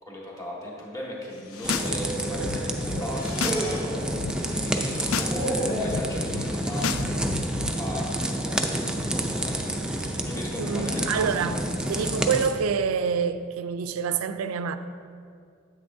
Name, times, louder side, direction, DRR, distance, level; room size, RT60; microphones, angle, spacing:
voice 1, 0.0-3.8 4.4-8.8 9.0-11.6, left 1 dB, 15° left, 1.6 m, -37 dB
sound 1, 1.3-2.4 2.7-4.6 4.9-6.0 6.5-6.9 7.2-7.4 8.2-8.6 9.1-9.5 10.3-12.5, right 1 dB, 40° left, 2.1 m, -35 dB
sound 2, 1.4-1.9 2.2-3.6 3.9-4.3 4.8-5.4 5.6-7.7, left 5 dB, 80° left, 0.4 m, -33 dB
sound 3, 1.6-12.5, right 1 dB, 5° right, 0.4 m, -29 dB
voice 2, 10.6-14.8, right 6 dB, 90° right, 0.4 m, -27 dB
9.3 x 8.6 x 2.6 m
head